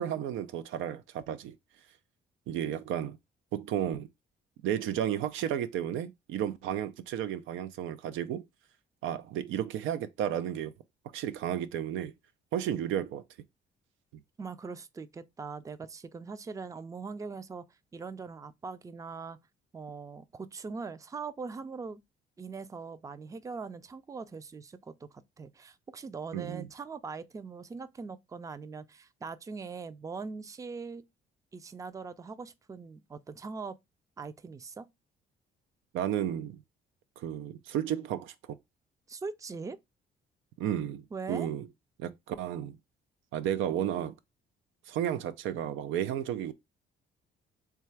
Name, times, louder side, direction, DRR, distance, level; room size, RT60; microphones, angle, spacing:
voice 1, 0.0-1.6 2.5-3.2 3.5-4.1 4.6-8.4 9.0-10.7 11.1-12.1 12.5-13.2 26.3-26.7 35.9-36.6 37.2-38.6 40.6-41.7 42.0-42.8 43.3-44.2 44.9-46.5, right 10 dB, 85° right, 0.4 m, -33 dB
voice 2, 14.4-17.6 17.9-19.4 19.7-22.0 22.4-31.0 31.5-33.8 34.2-34.9 39.1-39.8 41.1-41.5, right 4 dB, 15° right, 0.3 m, -41 dB
3.2 x 2.3 x 4.4 m
cardioid pair, 90°, 20 cm